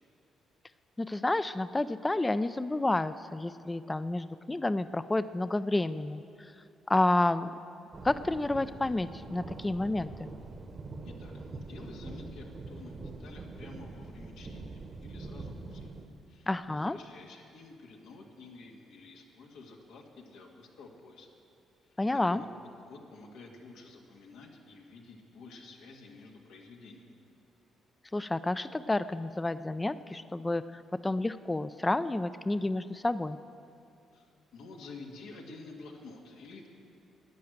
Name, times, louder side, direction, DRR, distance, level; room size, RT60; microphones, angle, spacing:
voice 1, 1.0-6.5 6.9-7.5 8.0-10.3 16.5-17.0 22.0-22.4 28.1-33.4, left 2 dB, 15° left, 13 dB, 0.3 m, -30 dB
sound 1, 7.9-16.1, right 3 dB, 40° right, 1.0 m, -44 dB
voice 2, 11.0-15.9 16.3-21.3 21.8-22.0 22.3-22.5 22.8-27.2 34.1-36.7, left 3 dB, 90° left, 0 dB, 1.8 m, -50 dB
11.5 x 10.0 x 7.8 m, 2.5 s
cardioid pair, 90°, 0 cm